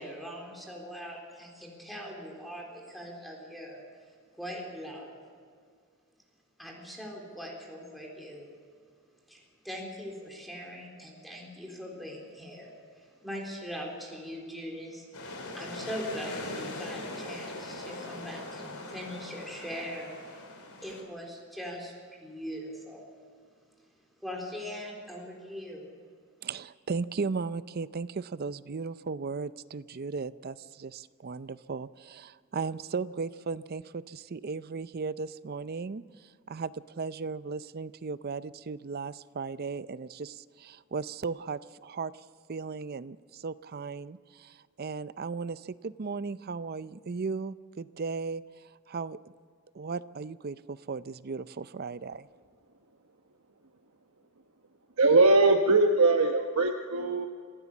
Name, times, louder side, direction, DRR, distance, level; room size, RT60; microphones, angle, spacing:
voice 1, 0.0-4.1 4.4-5.2 6.6-8.5 9.3-20.4 20.8-23.0 24.2-25.9, equal, ahead, -1 dB, 3.6 m, -41 dB
sound 1, 15.1-21.0, left 2 dB, 80° left, 3.6 m, -40 dB
voice 2, 26.4-36.0 36.5-42.1 42.5-48.4 48.9-49.2 49.7-52.3, right 4 dB, 45° right, 16 dB, 0.5 m, -36 dB
voice 3, 55.0-57.3, right 3 dB, 75° right, 3 dB, 1.1 m, -21 dB
26.0 x 15.0 x 7.2 m, 2.1 s
head